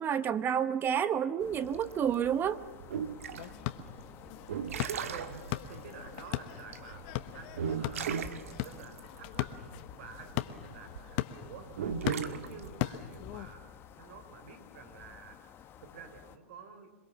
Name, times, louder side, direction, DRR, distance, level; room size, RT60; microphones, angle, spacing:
voice 1, 0.0-2.6, right 8 dB, 25° right, 14 dB, 1.1 m, -29 dB
sound 1, 1.4-16.4, left 9 dB, 30° left, 1.5 m, -53 dB
sound 2, 1.6-11.0 11.7-12.7, right 7 dB, 75° right, 1.7 m, -37 dB
sound 3, 3.4-13.5, left 15 dB, 50° left, 1.3 m, -39 dB
voice 2, 5.0-7.1 7.3-8.2 8.6-9.6 9.9-11.8 12.2-13.7 14.0-17.0, right 6 dB, 60° right, 9 dB, 4.0 m, -50 dB
27.0 x 22.0 x 7.2 m, 1.2 s
hypercardioid pair, 115°, 8 cm